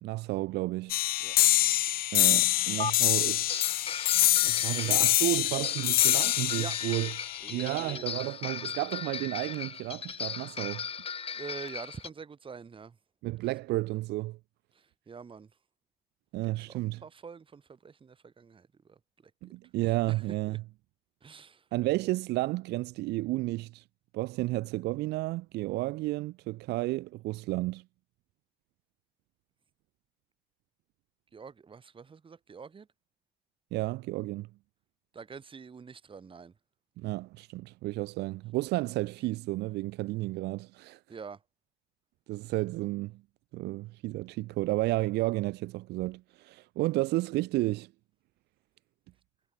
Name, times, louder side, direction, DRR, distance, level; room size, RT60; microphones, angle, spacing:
voice 1, 0.0-1.0 2.1-3.6 4.4-7.1 7.5-10.9 13.2-14.4 16.3-17.0 19.4-20.6 21.7-23.8 24.1-27.8 33.7-34.5 37.0-41.0 42.3-43.2 43.5-47.9, right 19 dB, 80° right, 0.6 m, -32 dB
sound 1, 0.9-7.9, left 16 dB, 60° left, 0.4 m, -26 dB
voice 2, 1.7-2.0 6.6-6.8 7.4-8.3 11.3-13.0 14.7-15.5 16.4-19.0 19.4-19.5 19.8-20.2 20.5-20.6 21.2-21.6 31.3-32.9 35.1-36.5 41.1-41.4, right 5 dB, 30° right, 3.5 m, -46 dB
sound 2, 2.8-2.9 3.5-12.1, left 6 dB, 35° left, 2.1 m, -37 dB
cardioid pair, 110°, 17 cm